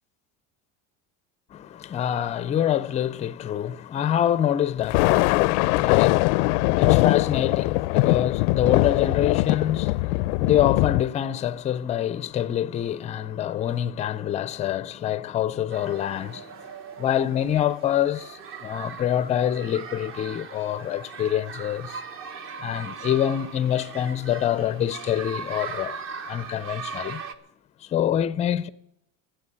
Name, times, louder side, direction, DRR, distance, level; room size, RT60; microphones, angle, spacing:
voice 1, 1.5-16.4 17.0-22.0 22.6-26.0 26.3-27.2 27.9-28.7, left 10 dB, 20° left, 0.4 m, -26 dB
Thunder, 4.8-11.0, left 21 dB, 85° left, 0.5 m, -21 dB
sound 1, 15.7-27.3, right 5 dB, 35° right, 1.0 m, -39 dB
13.5 x 8.1 x 9.9 m
cardioid pair, 160°, 34 cm